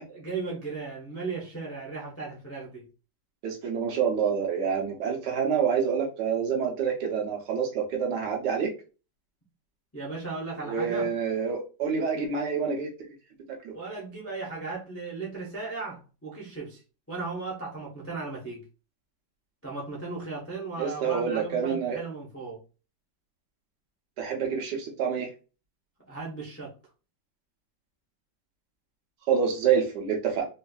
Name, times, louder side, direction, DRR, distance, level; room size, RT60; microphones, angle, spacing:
voice 1, 0.1-2.9 9.9-11.1 13.7-16.8 17.1-18.6 19.6-22.6 26.1-26.7, right 4 dB, 20° left, -4 dB, 0.4 m, -36 dB
voice 2, 3.4-8.7 10.7-12.9 13.6-13.7 20.8-22.0 24.2-25.3 29.3-30.5, right 6 dB, 65° right, 1 dB, 1.4 m, -27 dB
4.3 x 2.6 x 2.3 m, 0.33 s
omnidirectional pair, 2.0 m